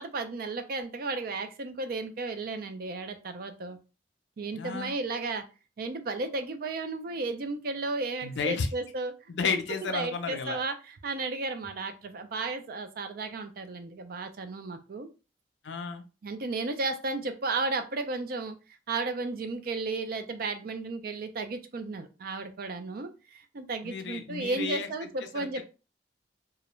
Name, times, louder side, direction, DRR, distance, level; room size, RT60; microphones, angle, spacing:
voice 1, 0.0-3.8 4.4-5.4 5.8-9.1 9.8-15.1 16.2-18.6 18.9-25.6, right 3 dB, 55° right, 7 dB, 0.4 m, -34 dB
voice 2, 4.5-4.9 8.2-8.7 9.3-10.6 15.6-16.0 23.8-24.9 25.3-25.6, left 5 dB, 85° left, 7 dB, 0.4 m, -32 dB
2.4 x 2.1 x 3.0 m, 0.32 s
head